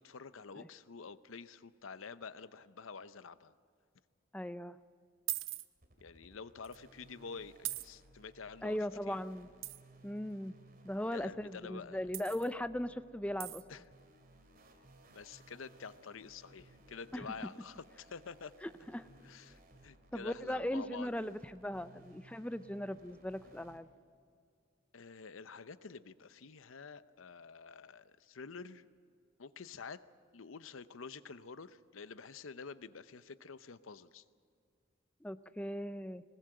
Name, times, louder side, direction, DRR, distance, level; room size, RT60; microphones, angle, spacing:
voice 1, 0.0-3.5 6.0-8.8 9.1-9.2 11.1-12.0 13.7-13.8 15.1-18.5 19.2-21.3 24.9-28.9 29.4-30.0 30.3-34.2, left 5 dB, 90° left, 14 dB, 0.7 m, -48 dB
voice 2, 4.3-4.8 8.6-9.5 10.0-10.6 10.8-13.6 17.1-17.3 18.6-19.1 20.1-23.9 35.2-36.2, left 1 dB, 5° left, 13 dB, 0.5 m, -38 dB
sound 1, 5.3-5.7 6.6-6.8 7.6-7.9 9.6-9.8 12.1-12.5 13.4-13.6, right 16 dB, 80° right, 0.7 m, -39 dB
sound 2, 5.8-23.8, right 1 dB, 50° right, 2.5 m, -62 dB
20.5 x 20.0 x 7.8 m, 2.2 s
head